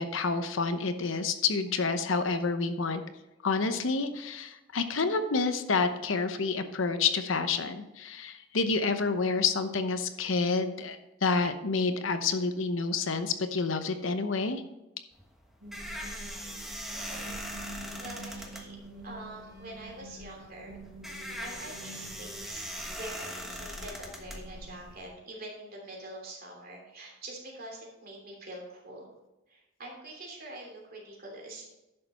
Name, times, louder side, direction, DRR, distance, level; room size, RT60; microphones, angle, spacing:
voice 1, 0.0-3.0 3.4-14.6, left 4 dB, 75° left, 9 dB, 0.9 m, -29 dB
sound 1, 15.1-25.1, equal, ahead, 1.3 m, -41 dB
sound 2, 15.6-25.1, right 1 dB, 65° right, 3.9 m, -46 dB
voice 2, 16.9-17.4 18.0-18.8 19.0-20.8 21.2-29.1 29.5-31.7, right 1 dB, 50° right, -1 dB, 3.0 m, -45 dB
11.0 x 6.7 x 4.2 m, 0.97 s
head